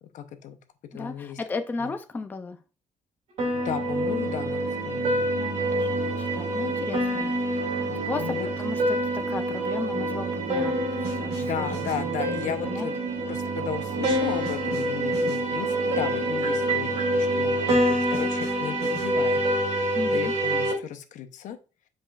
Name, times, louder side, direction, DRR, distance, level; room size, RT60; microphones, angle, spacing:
voice 1, 0.0-0.6 0.9-1.4 1.8-1.9 3.5-5.3 7.9-8.5 11.4-12.9 13.3-19.4 20.1-21.6, left 9 dB, 65° left, 9 dB, 0.8 m, -35 dB
voice 2, 0.9-2.6 5.0-12.4 12.7-12.9 19.9-20.3, left 3 dB, 15° left, 7 dB, 0.4 m, -35 dB
sound 1, 3.4-20.7, equal, 55° right, 2.5 m, -27 dB
sound 2, 3.4-17.7, right 6 dB, 75° right, 0.7 m, -33 dB
7.7 x 5.0 x 2.4 m, 0.33 s
cardioid pair, 165°, 14 cm